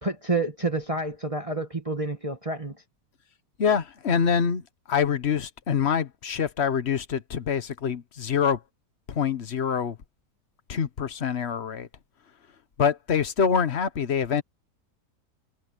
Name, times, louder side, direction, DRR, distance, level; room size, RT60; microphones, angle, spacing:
voice 1, 0.0-2.8, right 2 dB, 20° right, 1.6 m, -29 dB
voice 2, 3.6-4.6 4.9-8.6 9.1-10.0 10.7-11.9 12.8-14.4, left 7 dB, 45° left, 1.2 m, -25 dB
omnidirectional pair, 1.8 m